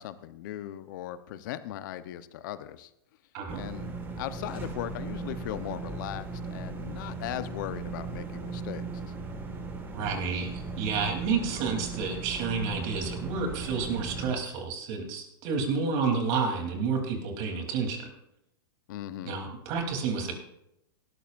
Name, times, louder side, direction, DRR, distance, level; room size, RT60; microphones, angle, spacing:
voice 1, 0.0-2.9 3.5-8.8 18.9-19.4, left 12 dB, 55° left, 12 dB, 1.0 m, -38 dB
sound 1, 3.5-14.4, right 3 dB, 15° right, 1.9 m, -37 dB
voice 2, 9.9-18.1 19.2-20.3, right 5 dB, 45° right, 3 dB, 3.4 m, -30 dB
18.0 x 13.5 x 2.6 m, 0.81 s
hypercardioid pair, 135°, 12 cm